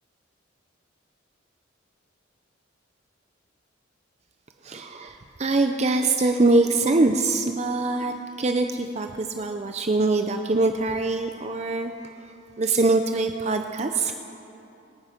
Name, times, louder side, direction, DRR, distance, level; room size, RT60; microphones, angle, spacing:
voice 1, 4.6-11.9 12.6-14.1, right 2 dB, 35° right, 6 dB, 0.5 m, -23 dB
24.5 x 9.5 x 5.1 m, 2.8 s
head